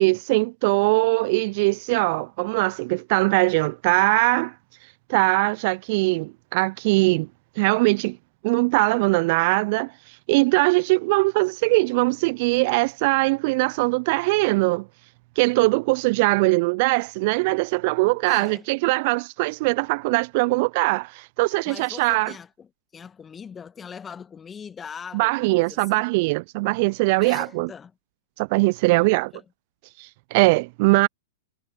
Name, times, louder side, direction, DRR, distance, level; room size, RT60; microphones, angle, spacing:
voice 1, 0.0-4.5 5.1-7.3 7.6-8.2 8.4-14.9 15.4-22.3 25.1-27.7 28.4-29.3 30.0-31.1, right 25 dB, 45° right, 0.4 m, -21 dB
voice 2, 18.3-18.7 21.7-26.0 27.2-27.9 28.9-29.4 30.9-31.1, left 7 dB, 20° left, 2.1 m, -41 dB
figure-of-eight pair, 105°, 0 cm